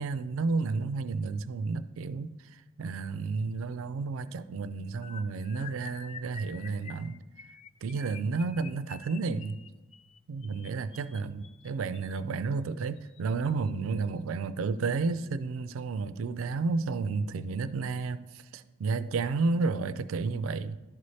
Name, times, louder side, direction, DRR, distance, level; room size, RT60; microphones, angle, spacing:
voice 1, 0.0-7.2 7.8-9.6 10.3-18.2 18.5-20.8, right 4 dB, 85° right, 0.4 m, -31 dB
sound 1, 5.0-12.2 13.0-13.2 13.5-13.7 14.0-14.2, left 6 dB, 30° left, 0.4 m, -49 dB
12.0 x 4.1 x 3.2 m
head